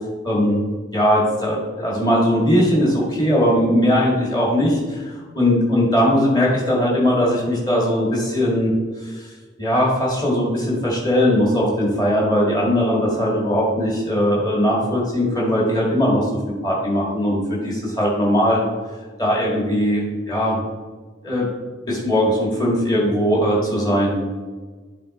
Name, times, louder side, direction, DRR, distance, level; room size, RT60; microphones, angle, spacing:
voice 1, 0.2-0.6 0.9-8.7 9.0-9.3 9.6-16.2 16.6-18.6 19.2-20.6 21.2-21.5 21.9-24.2, equal, 20° left, -4 dB, 1.9 m, -19 dB
8.2 x 3.8 x 4.2 m, 1.4 s
head